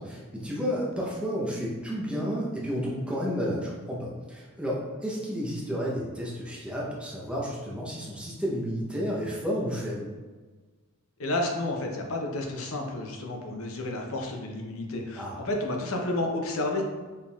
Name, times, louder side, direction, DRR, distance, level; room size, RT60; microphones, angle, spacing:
voice 1, 0.0-10.1 15.2-15.4, equal, 5° right, -5 dB, 0.7 m, -31 dB
voice 2, 11.2-16.8, left 2 dB, 70° left, 1 dB, 0.6 m, -31 dB
4.3 x 3.5 x 2.3 m, 1.3 s
head